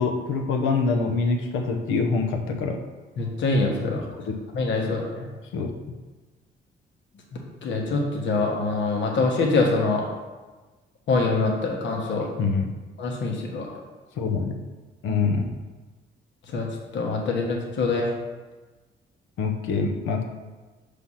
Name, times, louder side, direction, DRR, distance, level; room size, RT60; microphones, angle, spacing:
voice 1, 0.0-2.8 4.8-4.9 5.5-5.7 12.4-12.7 14.2-14.6 15.0-15.5 19.4-20.2, left 4 dB, 90° left, 3 dB, 0.8 m, -25 dB
voice 2, 3.2-4.0 4.5-5.3 7.3-10.1 11.1-12.3 13.0-13.7 16.5-16.7 16.9-18.1, left 3 dB, 70° left, -1 dB, 1.2 m, -24 dB
5.7 x 3.4 x 5.6 m, 1.2 s
cardioid pair, 90°, 20 cm